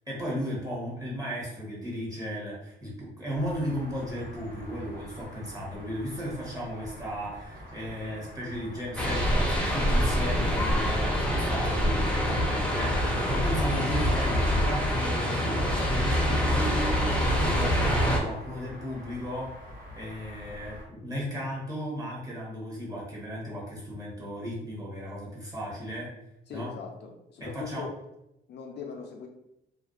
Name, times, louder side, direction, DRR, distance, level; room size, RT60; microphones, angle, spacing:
voice 1, 0.1-19.5 19.9-26.1 26.5-26.7 27.4-27.9, equal, 15° right, -5 dB, 0.9 m, -35 dB
sound 1, 3.3-20.8, left 1 dB, 50° right, 1.2 m, -45 dB
sound 2, 9.0-18.2, equal, 5° left, 0.6 m, -25 dB
voice 2, 26.5-28.0 28.5-29.3, left 5 dB, 60° left, 1 dB, 0.5 m, -40 dB
2.5 x 2.2 x 2.3 m, 0.85 s
cardioid pair, 90°, 20 cm